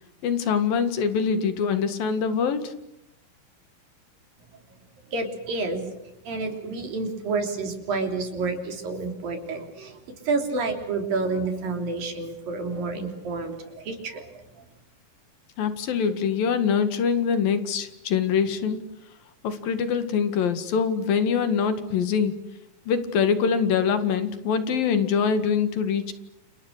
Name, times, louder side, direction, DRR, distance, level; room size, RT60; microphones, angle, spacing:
voice 1, 0.2-2.7 15.6-18.8 19.4-22.4 22.9-26.1, left 6 dB, 85° left, 10 dB, 3.7 m, -24 dB
voice 2, 5.1-5.9 6.3-14.4, right 3 dB, 80° right, 4 dB, 5.2 m, -29 dB
29.5 x 29.5 x 6.6 m, 0.87 s
omnidirectional pair, 4.0 m